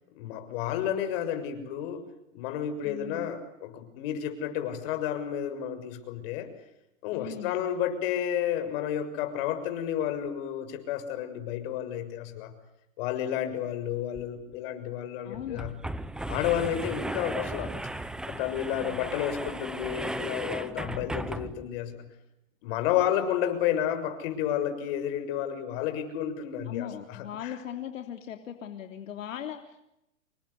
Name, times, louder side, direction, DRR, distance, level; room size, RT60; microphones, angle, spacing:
voice 1, 0.1-2.1 2.3-6.5 7.0-12.5 13.0-15.7 16.3-17.7 18.3-22.0 22.6-27.6, left 10 dB, 45° left, 8 dB, 6.8 m, -31 dB
voice 2, 2.8-3.3 7.1-7.7 15.2-15.6 17.0-17.3 18.8-19.1 26.7-29.9, left 9 dB, 80° left, 5 dB, 3.4 m, -39 dB
sound 1, 14.1-14.2 14.5-14.6 15.3-21.8, right 1 dB, ahead, 1.0 m, -36 dB
28.0 x 24.0 x 8.4 m, 0.86 s
hypercardioid pair, 145°, 39 cm